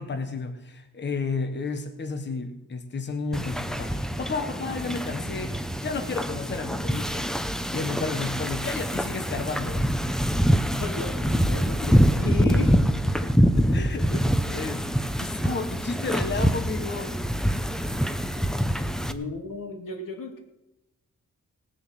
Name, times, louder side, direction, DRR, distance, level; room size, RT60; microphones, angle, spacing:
voice 1, 0.0-9.9 13.2-14.9 15.2-17.2, left 4 dB, 35° left, 7 dB, 1.0 m, -32 dB
Wind / Ocean, 3.3-19.1, equal, ahead, 0.6 m, -25 dB
voice 2, 10.8-12.8 18.8-20.4, left 4 dB, 85° left, 4 dB, 2.2 m, -34 dB
18.0 x 7.1 x 7.6 m, 0.93 s
wide cardioid pair, 180°, 32 cm